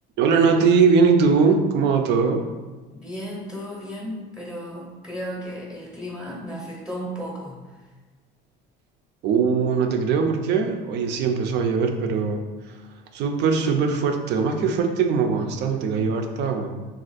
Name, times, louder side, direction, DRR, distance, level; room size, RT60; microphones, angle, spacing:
voice 1, 0.2-2.5 9.2-12.8 13.1-16.7, right 5 dB, 65° right, 4 dB, 0.5 m, -21 dB
voice 2, 2.9-7.8, equal, 5° right, -3 dB, 0.7 m, -34 dB
2.5 x 2.4 x 4.0 m, 1.3 s
cardioid pair, 105°, 19 cm